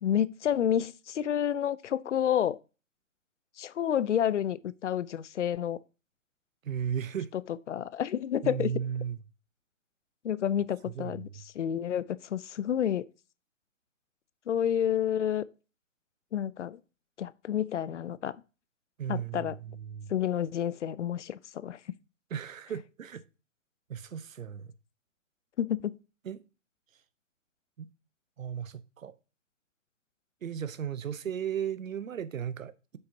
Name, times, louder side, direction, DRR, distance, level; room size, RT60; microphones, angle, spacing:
voice 1, 0.0-2.6 3.6-5.8 7.3-8.7 10.2-13.1 14.5-15.4 16.3-16.8 17.2-18.4 19.1-19.6 20.1-21.8 25.6-26.0, left 9 dB, 65° left, 0.5 m, -29 dB
voice 2, 6.6-7.3 8.4-9.2 10.9-11.3 19.0-20.1 22.3-23.2 23.9-24.7 26.2-26.4 27.8-27.9 28.4-29.1 30.4-33.0, right 8 dB, 85° right, 0.8 m, -35 dB
7.7 x 5.6 x 2.7 m
hypercardioid pair, 165°, 39 cm